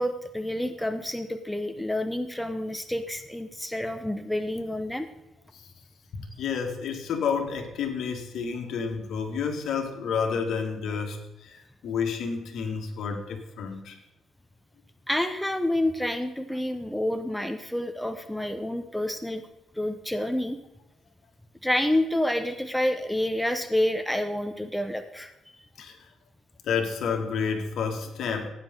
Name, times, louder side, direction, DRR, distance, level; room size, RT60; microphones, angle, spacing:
voice 1, 0.0-5.1 15.1-19.4 19.7-20.6 21.6-25.6, left 1 dB, 5° left, 8 dB, 1.0 m, -28 dB
voice 2, 6.1-14.0 25.8-26.0 26.6-28.5, left 6 dB, 70° left, 4 dB, 2.3 m, -30 dB
17.0 x 9.5 x 4.0 m, 0.96 s
cardioid pair, 90°, 0 cm